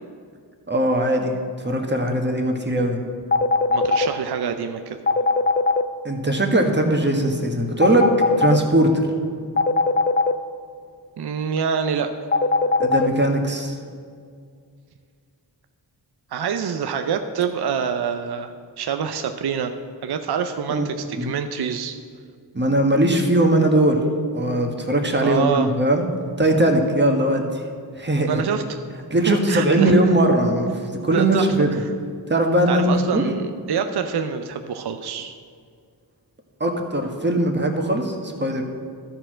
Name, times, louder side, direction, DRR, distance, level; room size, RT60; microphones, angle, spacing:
voice 1, 0.7-1.4 1.6-3.0 6.0-9.1 12.8-13.8 20.7-21.3 22.5-24.0 24.3-26.0 26.4-27.5 28.0-28.6 29.1-31.7 32.3-33.2 36.6-38.6, right 1 dB, 25° right, 3 dB, 1.5 m, -20 dB
sound 1, 3.3-4.1 5.1-5.8 7.8-8.6 9.6-10.3 12.3-13.1, left 3 dB, 25° left, 0.5 m, -18 dB
voice 2, 3.7-5.0 11.2-12.1 16.3-19.7 20.0-22.0 25.2-25.7 28.3-28.8 29.3-29.9 31.1-31.9 32.7-35.3, right 7 dB, 60° right, 7 dB, 0.6 m, -26 dB
12.5 x 4.5 x 6.2 m, 2.2 s
cardioid pair, 40°, 44 cm